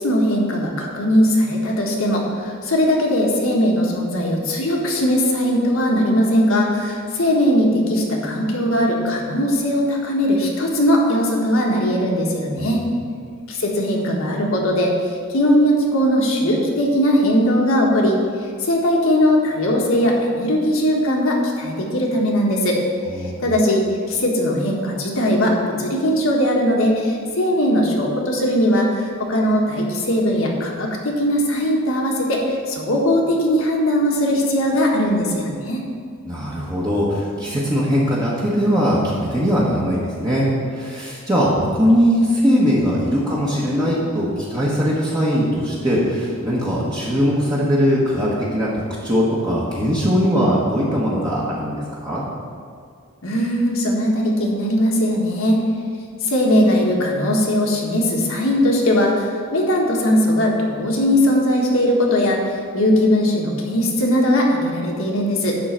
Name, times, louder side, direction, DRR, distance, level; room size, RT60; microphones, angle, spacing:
voice 1, 0.0-12.8 13.5-18.2 18.6-22.8 23.4-35.8 53.2-55.6 56.2-65.6, equal, 65° left, -1 dB, 1.6 m, -19 dB
voice 2, 12.6-13.0 23.2-23.5 36.2-40.5 40.7-52.2, equal, 20° right, -7 dB, 1.3 m, -20 dB
11.0 x 3.9 x 7.5 m, 2.1 s
head